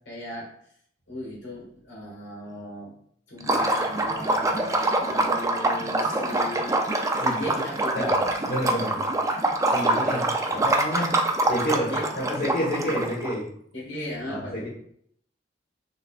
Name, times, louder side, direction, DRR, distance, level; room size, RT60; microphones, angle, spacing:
voice 1, 0.1-0.5 1.1-2.9 3.3-6.9 7.2-8.2 8.7-8.8 11.9-12.1 13.7-14.7, left 1 dB, 70° left, -3 dB, 1.8 m, -37 dB
Liquid, 3.4-13.3, right 2 dB, 15° right, 0.4 m, -25 dB
voice 2, 7.2-7.6 7.9-8.1 8.4-9.0 9.7-11.1 11.5-13.5 14.3-14.7, equal, 50° left, -7 dB, 1.3 m, -29 dB
5.7 x 3.3 x 2.4 m, 0.66 s
head